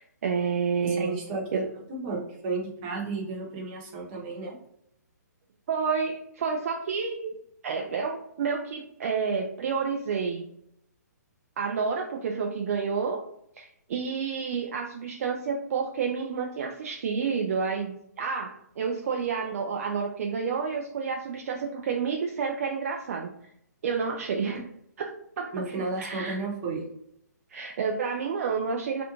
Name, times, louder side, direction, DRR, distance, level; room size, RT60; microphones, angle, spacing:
voice 1, 0.0-1.2 1.5-1.7 5.7-7.3 7.6-10.4 11.6-13.2 13.6-23.3 23.8-24.6 25.0-25.1 25.4-26.4 27.5-29.0, right 5 dB, 55° right, 1 dB, 0.3 m, -29 dB
voice 2, 0.8-1.6 1.9-4.5 25.5-26.8, right 3 dB, 30° right, -2 dB, 0.9 m, -33 dB
2.5 x 2.1 x 2.9 m, 0.74 s
figure-of-eight pair, 135°, 10 cm